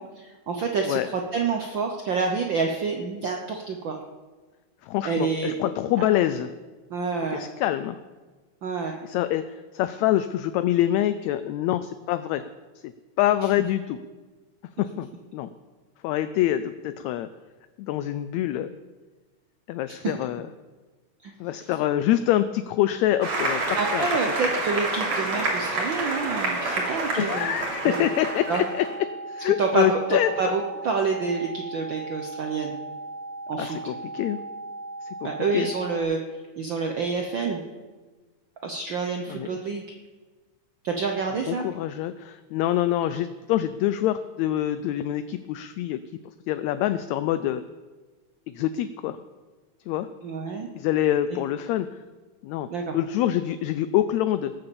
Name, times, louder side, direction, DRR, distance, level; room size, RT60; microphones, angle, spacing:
voice 1, 0.0-4.0 5.0-5.6 6.9-7.4 8.6-9.0 19.9-20.0 21.2-21.3 23.8-27.5 27.9-28.1 28.5-28.6 29.6-32.7 33.5-33.8 35.2-36.2 36.6-37.7 38.6-39.8 40.8-41.6 50.2-50.7 52.7-53.0, right 4 dB, 80° right, 3 dB, 1.0 m, -28 dB
voice 2, 4.8-6.5 7.3-8.0 9.0-12.4 12.8-12.9 13.2-14.0 14.8-15.1 15.3-15.5 16.0-17.3 17.8-18.7 19.7-20.4 21.4-24.1 27.2-30.5 33.6-34.4 35.0-35.7 39.3-39.6 41.5-46.0 46.5-47.6 48.5-49.2 49.9-50.1 50.7-51.9 52.4-54.5, left 12 dB, 80° left, 12 dB, 1.7 m, -25 dB
Applause, 23.2-28.9, right 2 dB, 60° right, 3.5 m, -28 dB
sound 1, 27.8-36.0, right 2 dB, 30° left, 1.2 m, -38 dB
18.5 x 6.8 x 7.0 m, 1.3 s
omnidirectional pair, 3.5 m